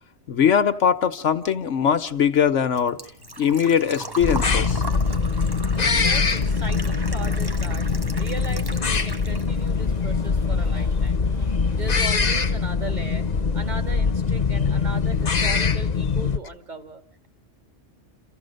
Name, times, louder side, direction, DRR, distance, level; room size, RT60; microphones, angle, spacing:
voice 1, 0.3-3.0 3.4-4.8, left 8 dB, 85° left, 1.4 m, -21 dB
Motorcycle, 1.3-14.0, equal, 85° right, 8.3 m, -51 dB
Engine / Trickle dribble / Fill (with liquid), 1.8-9.8 10.1-11.1 11.4-11.5 13.4-13.5 13.6-14.0 14.4-14.5 14.7-14.8, right 2 dB, 20° right, 1.1 m, -38 dB
sound 1, 4.2-16.4, left 5 dB, 40° left, 1.0 m, -23 dB
voice 2, 5.7-7.9 8.2-11.3 11.8-13.3 13.5-17.3, right 3 dB, 40° right, 2.1 m, -37 dB
28.0 x 15.0 x 6.6 m
omnidirectional pair, 1.2 m